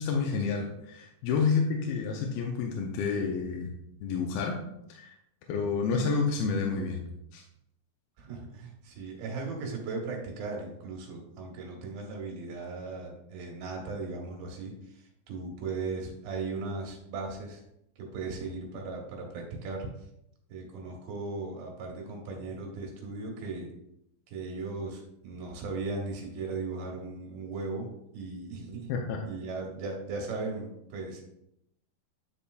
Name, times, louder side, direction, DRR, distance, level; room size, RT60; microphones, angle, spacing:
voice 1, 0.0-3.7 4.0-4.6 4.9-5.1 5.5-7.0 7.3-7.4 28.9-29.2, left 5 dB, 85° left, 1 dB, 2.5 m, -29 dB
voice 2, 8.2-17.6 18.0-19.9 20.5-23.7 24.3-28.9 29.3-31.2, right 3 dB, 80° right, 1 dB, 3.0 m, -37 dB
10.0 x 4.2 x 2.3 m, 0.80 s
omnidirectional pair, 4.3 m